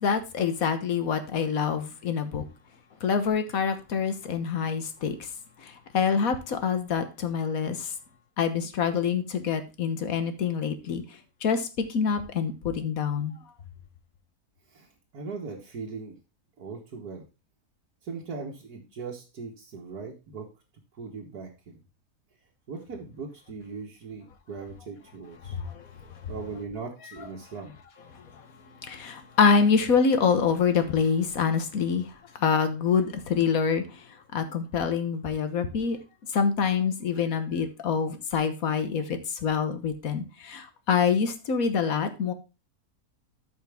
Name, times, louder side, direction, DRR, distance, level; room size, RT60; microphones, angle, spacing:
voice 1, 0.0-2.4 3.0-5.1 5.9-7.9 8.4-11.0 11.4-11.6 11.9-13.4 28.9-32.0 32.4-33.8 34.3-36.0 36.3-42.3, left 6 dB, 65° left, 8 dB, 1.6 m, -26 dB
voice 2, 15.1-16.1 16.6-17.3 18.0-20.5 20.9-21.8 22.7-25.6 26.3-27.8, right 5 dB, 90° right, -3 dB, 2.0 m, -39 dB
13.0 x 5.2 x 3.5 m, 0.29 s
omnidirectional pair, 1.6 m